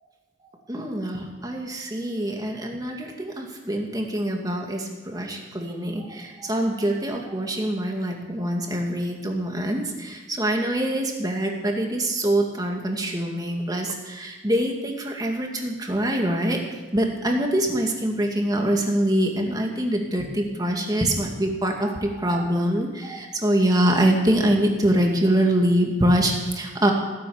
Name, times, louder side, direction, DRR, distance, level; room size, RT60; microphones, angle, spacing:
voice 1, 0.7-16.6 16.9-26.9, right 1 dB, 20° right, 1 dB, 2.2 m, -24 dB
16.5 x 10.5 x 7.1 m, 1.2 s
head